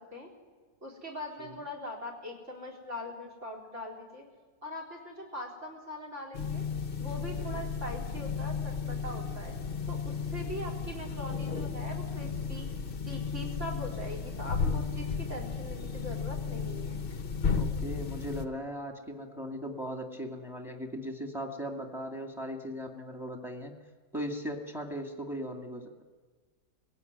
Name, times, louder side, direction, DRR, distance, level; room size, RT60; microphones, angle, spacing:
voice 1, 0.8-4.2 4.6-6.6 7.0-9.5 9.9-12.7 13.0-17.0, left 1 dB, 45° right, 2 dB, 4.4 m, -41 dB
sound 1, 6.3-18.5, left 5 dB, 40° left, 1.0 m, -34 dB
voice 2, 17.5-23.7 24.1-26.0, equal, ahead, 4 dB, 2.2 m, -38 dB
23.5 x 16.5 x 9.5 m, 1.5 s
omnidirectional pair, 1.8 m